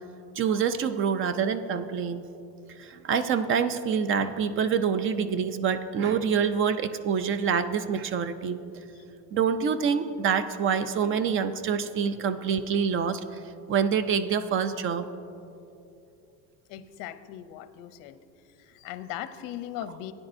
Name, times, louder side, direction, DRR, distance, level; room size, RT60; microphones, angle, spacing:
voice 1, 0.4-2.2 2.8-8.6 9.3-13.2 13.7-15.1, right 7 dB, 35° right, 12 dB, 0.4 m, -26 dB
voice 2, 16.7-18.2 18.5-20.1, left 12 dB, 60° left, 12 dB, 0.6 m, -39 dB
17.0 x 9.8 x 2.6 m, 2.7 s
cardioid pair, 140°, 38 cm